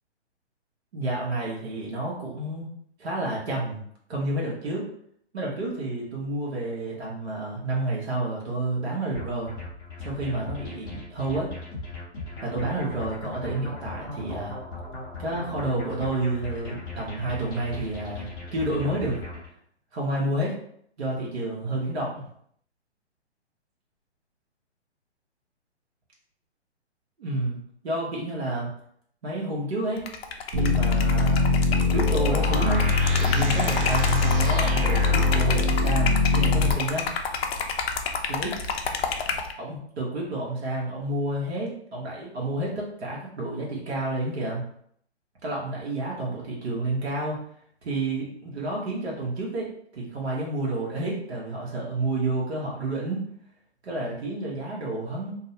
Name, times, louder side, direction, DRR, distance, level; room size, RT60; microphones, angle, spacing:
voice 1, 0.9-2.7 3.0-3.8 4.1-4.8 5.3-9.5 10.0-11.5 12.4-14.6 15.2-19.2 19.9-20.5 21.0-22.2 27.2-27.6 27.8-28.7 29.2-30.0 30.5-31.5 31.9-32.8 33.2-37.0 38.3-38.5 39.6-44.6 45.4-47.4 47.8-49.7 49.9-53.2 53.8-55.3, right 2 dB, 70° right, -4 dB, 1.0 m, -30 dB
sound 1, 9.1-19.5, left 2 dB, 10° left, 0.6 m, -38 dB
Liquid, 30.0-39.5, left 5 dB, 60° left, 0.5 m, -30 dB
sound 2, 30.5-36.7, left 3 dB, 35° right, 0.7 m, -22 dB
2.6 x 2.0 x 2.7 m, 0.66 s
hypercardioid pair, 140°, 35 cm